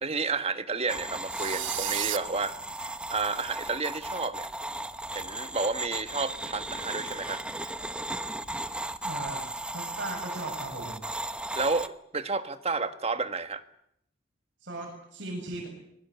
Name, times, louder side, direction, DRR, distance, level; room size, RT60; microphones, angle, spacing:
voice 1, 0.0-2.5 2.8-4.5 5.1-7.4 11.5-13.6, right 4 dB, 30° right, 9 dB, 1.5 m, -31 dB
ceramic friction small clay pot lid turn slowly grind, 0.9-11.9, right 1 dB, 5° right, 1.0 m, -36 dB
sound 1, 1.3-2.2, right 13 dB, 85° right, 1.1 m, -32 dB
voice 2, 9.0-9.4 9.7-11.0 14.6-15.7, right 2 dB, 65° right, -1 dB, 7.6 m, -37 dB
26.5 x 21.5 x 8.3 m, 0.75 s
head